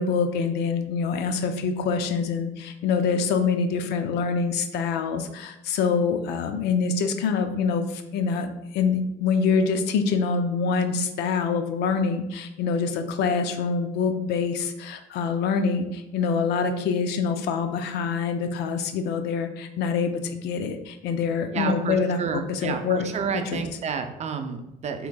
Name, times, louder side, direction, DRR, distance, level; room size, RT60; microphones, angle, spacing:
voice 1, 0.0-22.2 22.5-23.0 23.3-23.6, left 5 dB, 80° left, 7 dB, 0.5 m, -25 dB
voice 2, 21.5-25.1, right 6 dB, 40° right, 6 dB, 0.5 m, -30 dB
6.0 x 3.1 x 2.3 m, 0.87 s
cardioid pair, 110°, 17 cm